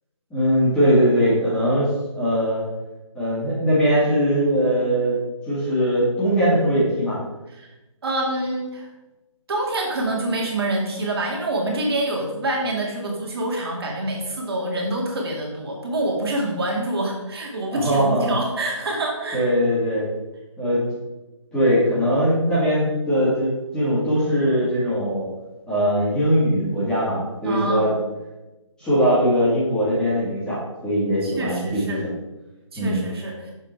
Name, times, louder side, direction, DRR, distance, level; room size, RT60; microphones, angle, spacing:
voice 1, 0.3-2.6 3.1-5.2 5.5-7.2 17.7-18.3 19.3-20.1 20.6-20.8 21.5-25.3 25.7-27.9 28.8-32.1 32.8-33.1, equal, 5° left, -11 dB, 2.1 m, -21 dB
voice 2, 8.0-8.9 9.5-19.4 27.4-27.9 31.2-32.0 32.7-33.5, right 1 dB, 50° right, -1 dB, 2.0 m, -26 dB
7.0 x 5.1 x 4.5 m, 1.0 s
figure-of-eight pair, 155°, 17 cm